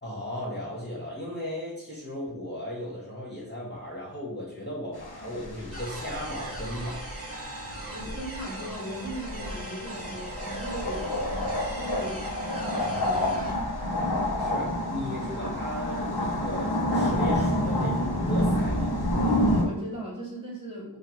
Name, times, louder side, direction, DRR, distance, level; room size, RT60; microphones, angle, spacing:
voice 1, 0.0-7.1 14.4-19.0, left 1 dB, 30° left, -5 dB, 2.4 m, -36 dB
sound 1, 5.0-19.6, left 1 dB, 85° left, 1.2 m, -29 dB
sound 2, 5.7-13.5, right 2 dB, 40° right, 1.4 m, -40 dB
voice 2, 7.9-11.2 11.7-12.2 12.6-13.6 19.2-21.0, equal, 15° right, -5 dB, 2.5 m, -38 dB
7.6 x 2.8 x 5.2 m, 0.82 s
wide cardioid pair, 50°, 37 cm